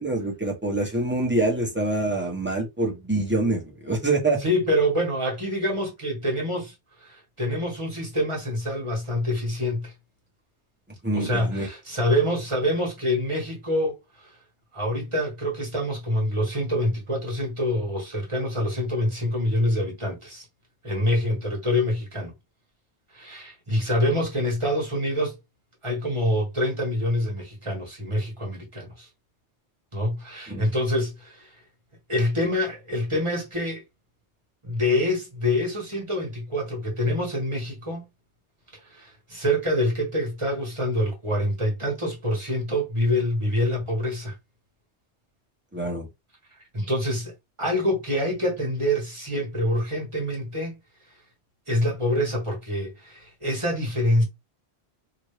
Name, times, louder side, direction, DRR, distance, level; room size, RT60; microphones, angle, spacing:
voice 1, 0.0-4.4 11.0-11.7 30.5-30.7 45.7-46.1, right 2 dB, 10° right, 1.1 m, -25 dB
voice 2, 4.4-6.7 7.0-9.9 11.1-14.0 14.7-20.4 20.8-22.3 23.1-25.4 25.8-29.1 29.9-31.5 32.1-33.8 34.6-38.0 38.8-44.3 46.7-50.8 51.7-54.2, left 1 dB, 25° right, 1.5 m, -26 dB
2.9 x 2.6 x 3.1 m
omnidirectional pair, 1.1 m